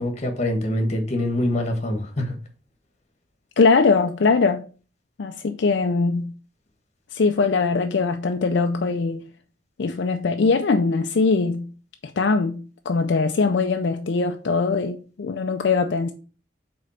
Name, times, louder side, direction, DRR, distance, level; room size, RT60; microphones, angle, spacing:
voice 1, 0.0-2.3, left 1 dB, 35° left, 1.3 m, -24 dB
voice 2, 3.6-4.7 5.2-6.3 7.1-9.3 9.8-11.7 12.0-16.1, left 4 dB, 60° left, 0.4 m, -21 dB
5.0 x 3.9 x 5.6 m
head